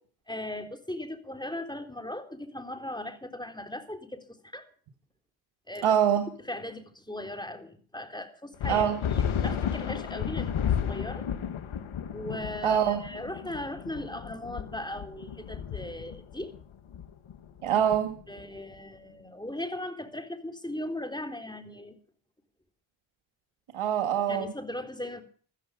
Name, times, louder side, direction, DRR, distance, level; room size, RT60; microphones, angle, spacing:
voice 1, 0.3-4.7 5.7-5.9 6.5-8.9 9.1-11.3 12.1-16.5 18.3-22.0 24.3-25.2, left 1 dB, 10° left, 6 dB, 3.9 m, -38 dB
voice 2, 5.8-6.2 8.7-9.0 12.6-13.0 17.6-18.2 23.7-24.5, right 9 dB, 85° right, 7 dB, 2.0 m, -24 dB
sound 1, 8.6-18.6, left 8 dB, 75° left, 1.8 m, -33 dB
15.0 x 14.0 x 5.2 m, 0.43 s
cardioid pair, 50°, 48 cm